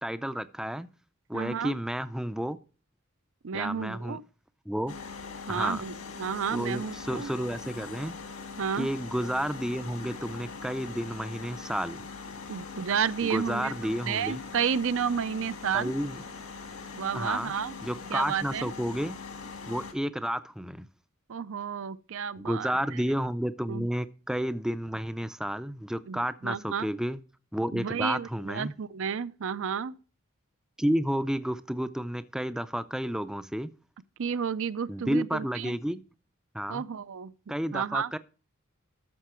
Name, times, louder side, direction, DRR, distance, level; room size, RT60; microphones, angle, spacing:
voice 1, 0.0-0.9 1.3-2.6 3.5-4.2 4.7-5.0 5.5-5.8 6.5-8.1 8.8-12.1 13.2-14.4 15.7-16.2 17.1-17.5 17.8-19.2 19.7-20.9 22.4-27.2 27.5-28.7 30.8-33.7 34.9-36.0 36.5-36.8 37.5-38.2, equal, 5° right, 0.4 m, -31 dB
voice 2, 1.3-1.8 3.4-4.2 5.5-7.3 8.6-8.9 12.5-15.9 17.0-17.7 18.1-18.7 21.3-22.7 23.7-23.9 26.1-26.9 27.7-30.0 34.2-35.8 36.7-37.3 37.7-38.1, right 7 dB, 65° right, 0.5 m, -31 dB
sound 1, 4.9-19.9, left 4 dB, 80° left, 1.8 m, -42 dB
13.0 x 6.8 x 4.3 m
head